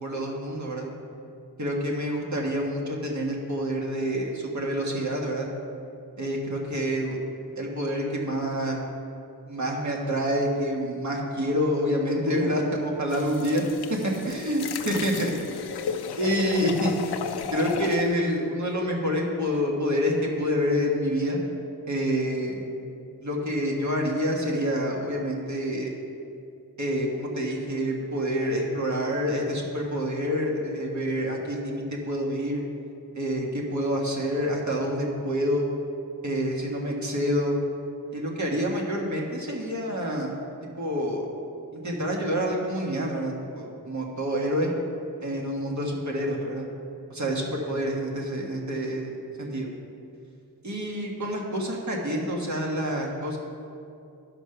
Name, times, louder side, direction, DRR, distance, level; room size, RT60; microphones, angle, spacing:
voice 1, 0.0-0.9 1.6-5.5 6.2-7.2 7.5-8.8 9.5-13.6 14.2-15.3 16.2-16.9 17.5-21.4 21.9-22.6 23.2-25.9 26.8-32.6 33.1-35.6 36.2-37.6 38.1-40.3 40.8-41.2 41.7-44.7 45.2-46.7 47.1-49.1 49.4-49.7 50.6-53.4, equal, 50° right, -1 dB, 1.5 m, -27 dB
sound 1, 13.1-18.1, left 7 dB, 85° left, 0.6 m, -34 dB
11.0 x 5.9 x 5.6 m, 2.5 s
wide cardioid pair, 125°, 37 cm